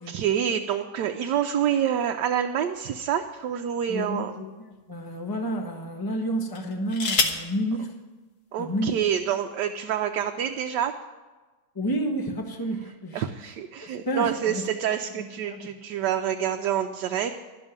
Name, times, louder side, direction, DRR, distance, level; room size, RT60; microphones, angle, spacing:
voice 1, 0.1-4.3 8.5-10.9 13.1-17.4, right 9 dB, 85° right, 4 dB, 1.2 m, -27 dB
sound 1, 2.7-4.0 4.7-4.9 6.5-7.5 8.7-8.8 9.1-9.5, left 4 dB, 70° left, 1.6 m, -29 dB
voice 2, 3.9-7.9 8.6-9.0 11.7-13.2 13.8-14.6 15.2-15.7, right 1 dB, 15° left, 2 dB, 1.1 m, -30 dB
12.0 x 6.3 x 8.8 m, 1.3 s
omnidirectional pair, 1.8 m